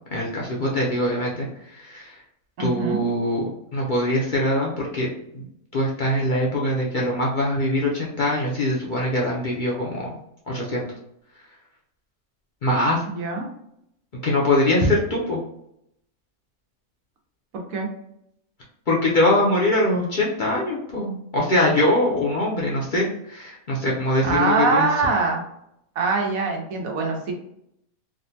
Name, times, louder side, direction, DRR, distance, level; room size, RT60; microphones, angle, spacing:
voice 1, 0.1-2.1 2.6-3.4 3.7-5.4 5.7-10.2 10.5-10.8 12.6-13.0 14.2-15.4 18.9-24.9, left 1 dB, 50° left, -4 dB, 0.6 m, -23 dB
voice 2, 2.6-3.0 13.1-13.5 17.7-17.9 24.2-25.4 26.0-27.3, right 4 dB, 85° right, 1 dB, 1.2 m, -23 dB
3.6 x 2.2 x 2.7 m, 0.76 s
omnidirectional pair, 1.4 m